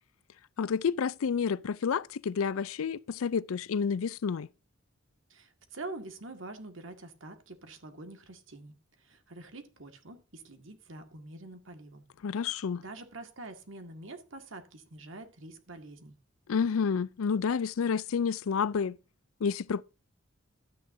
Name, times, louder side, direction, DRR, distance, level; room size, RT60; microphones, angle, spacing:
voice 1, 0.6-4.5 12.2-12.8 16.5-19.0 19.4-19.8, left 6 dB, 85° left, 0.4 m, -29 dB
voice 2, 5.3-12.0 12.8-16.1, right 2 dB, 65° right, 1.9 m, -46 dB
12.5 x 9.2 x 2.7 m
head